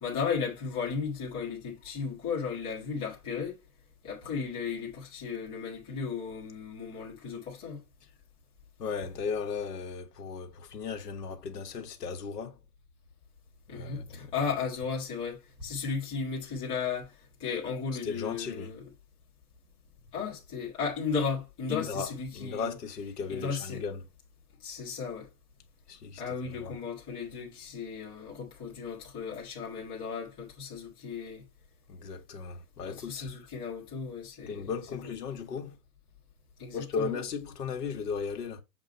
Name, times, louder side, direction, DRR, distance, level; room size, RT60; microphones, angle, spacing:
voice 1, 0.0-3.6 4.0-7.8 13.7-17.1 17.4-18.9 20.1-22.7 23.3-23.8 24.6-25.3 26.2-31.4 32.8-35.1 36.6-37.1, left 5 dB, 10° left, 1.4 m, -35 dB
voice 2, 8.8-12.6 13.7-14.3 18.0-18.7 21.7-24.0 25.9-26.7 31.9-33.3 34.5-35.8 36.7-38.6, left 5 dB, 75° left, 1.4 m, -36 dB
7.3 x 2.5 x 5.3 m
hypercardioid pair, 175°, 48 cm